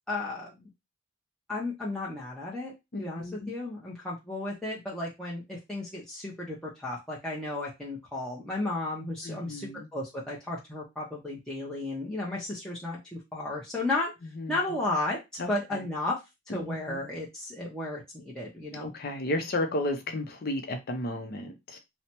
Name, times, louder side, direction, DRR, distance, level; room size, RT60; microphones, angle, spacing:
voice 1, 0.1-0.7 1.5-2.7 3.0-14.1 14.5-15.2 15.5-16.2 16.5-18.9, left 2 dB, 5° left, -6 dB, 0.6 m, -34 dB
voice 2, 2.9-3.5 9.2-9.9 14.4-14.6 15.4-15.8 16.5-17.0 18.7-21.8, left 1 dB, 50° left, 5 dB, 0.6 m, -33 dB
3.2 x 2.1 x 2.8 m, 0.21 s
head